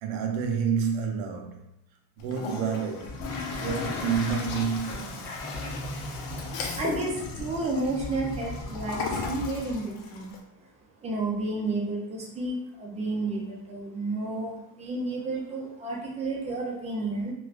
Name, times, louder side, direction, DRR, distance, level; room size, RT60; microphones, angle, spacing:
voice 1, 0.0-1.7 2.2-3.3 3.5-5.3, right 6 dB, 80° right, 0.8 m, -29 dB
Toilet flush, 2.2-10.4, left 4 dB, 70° left, 0.8 m, -36 dB
sound 1, 3.0-9.8, left 1 dB, 35° left, 1.0 m, -39 dB
voice 2, 6.5-10.7 11.0-17.3, right 2 dB, 15° right, 0.4 m, -31 dB
2.9 x 2.6 x 3.2 m
cardioid pair, 165°, 47 cm